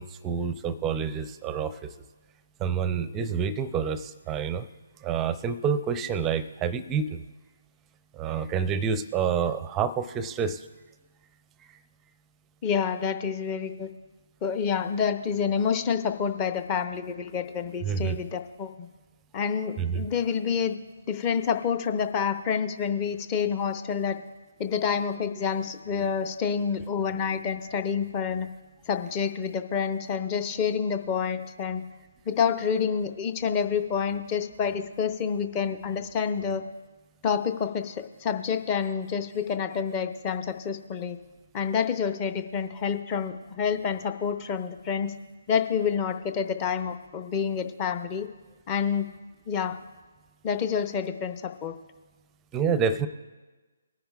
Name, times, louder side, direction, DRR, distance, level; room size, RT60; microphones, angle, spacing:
voice 1, 0.0-1.9 2.6-4.7 5.0-7.2 8.1-10.7 17.8-18.2 19.8-20.1 52.5-53.1, right 7 dB, 15° right, 14 dB, 0.5 m, -28 dB
voice 2, 12.6-13.9 14.4-18.9 19.3-20.8 21.1-24.2 24.6-28.5 28.9-31.8 32.3-36.6 37.2-41.2 41.5-45.1 45.5-48.3 48.7-49.1 49.5-49.8 50.4-51.8, left 6 dB, 25° left, 8 dB, 0.7 m, -28 dB
20.5 x 10.0 x 2.4 m, 1.3 s
figure-of-eight pair, 140°, 0 cm